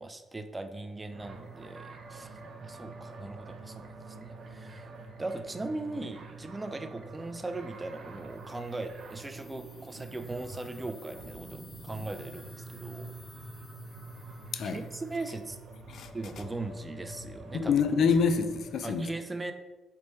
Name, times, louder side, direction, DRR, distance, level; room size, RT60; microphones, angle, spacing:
voice 1, 0.0-2.3 2.6-4.9 5.2-13.1 14.6-15.6 16.1-17.7 18.8-19.5, right 2 dB, 20° right, 0.4 m, -39 dB
sound 1, 1.1-18.7, right 3 dB, 55° right, 0.7 m, -47 dB
sound 2, 7.8-15.8, left 3 dB, 35° left, 1.0 m, -56 dB
voice 2, 17.5-19.1, left 5 dB, 65° left, 0.3 m, -26 dB
3.2 x 3.2 x 4.2 m
cardioid pair, 90°, 0 cm